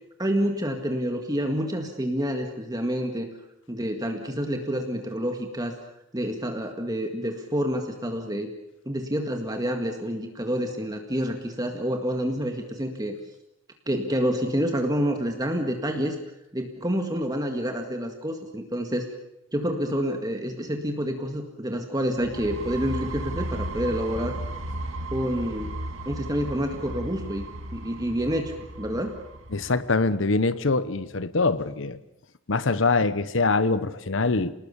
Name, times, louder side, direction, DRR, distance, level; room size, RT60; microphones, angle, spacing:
voice 1, 0.2-3.3 3.7-5.7 6.1-8.5 8.9-13.1 13.9-16.2 16.5-19.1 19.5-24.4 25.1-25.7 26.1-27.4 27.7-29.1, equal, 20° right, 4 dB, 1.9 m, -28 dB
sound 1, 22.2-29.8, right 1 dB, 80° right, 2.6 m, -35 dB
voice 2, 29.5-32.0 32.5-34.5, left 3 dB, 70° left, 14 dB, 1.1 m, -24 dB
28.0 x 19.5 x 7.1 m, 0.82 s
head